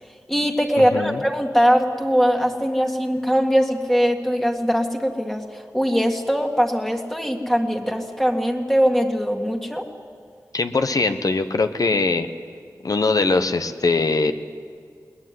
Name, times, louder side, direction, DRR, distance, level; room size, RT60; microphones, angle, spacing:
voice 1, 0.3-9.9, equal, 5° left, 1 dB, 1.9 m, -21 dB
voice 2, 10.5-12.3 12.8-14.3, left 3 dB, 60° left, 9 dB, 1.0 m, -21 dB
21.0 x 19.5 x 9.7 m, 2.2 s
wide cardioid pair, 70°, 7 cm